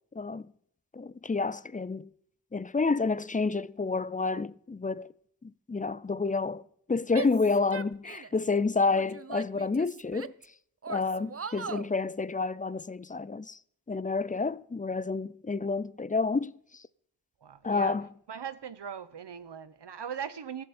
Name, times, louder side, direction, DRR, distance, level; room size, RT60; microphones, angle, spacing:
voice 1, 0.2-0.5 0.9-2.1 2.5-5.1 5.4-6.6 6.9-10.3 10.9-13.6 13.9-16.8 17.6-18.1, left 4 dB, 20° left, 0.4 m, -29 dB
Female speech woman speaking / Yell, 7.1-8.4 8.9-10.5 10.8-11.9, right 6 dB, 35° right, 0.6 m, -40 dB
voice 2, 17.4-18.0 18.3-20.6, right 7 dB, 75° right, 0.9 m, -39 dB
14.5 x 14.5 x 4.3 m
wide cardioid pair, 50°, 42 cm